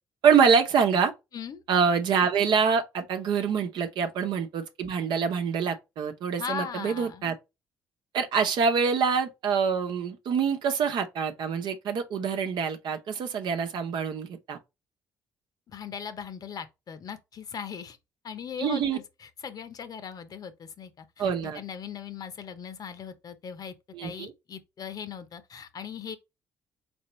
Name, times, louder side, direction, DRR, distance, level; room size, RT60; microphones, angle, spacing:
voice 1, 0.2-1.1 1.7-7.3 8.1-14.6 18.6-19.0 21.2-21.6 23.9-24.3, right 6 dB, 70° right, 0.9 m, -25 dB
voice 2, 6.4-7.2 15.7-18.0 18.2-23.7 24.0-26.2, left 7 dB, 55° left, 0.8 m, -39 dB
4.2 x 3.5 x 3.1 m
supercardioid pair, 70°, 8 cm